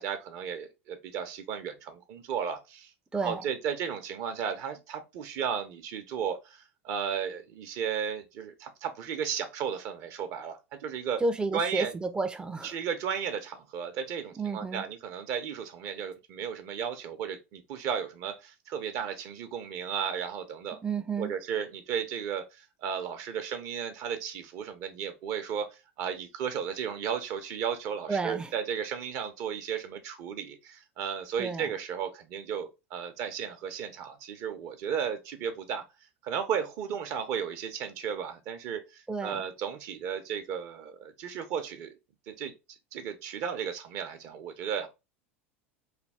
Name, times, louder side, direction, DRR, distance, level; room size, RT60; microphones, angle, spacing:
voice 1, 0.0-2.9 3.2-11.2 11.5-12.0 12.6-20.8 21.2-35.8 36.2-41.9 42.3-42.5 42.9-44.9, right 7 dB, 50° right, 0.8 m, -34 dB
voice 2, 11.2-12.8 14.4-14.8 20.8-21.3 28.1-28.5 31.4-31.7 39.1-39.4, right 3 dB, 10° right, 0.5 m, -31 dB
3.3 x 2.3 x 3.3 m
figure-of-eight pair, 80°, 7 cm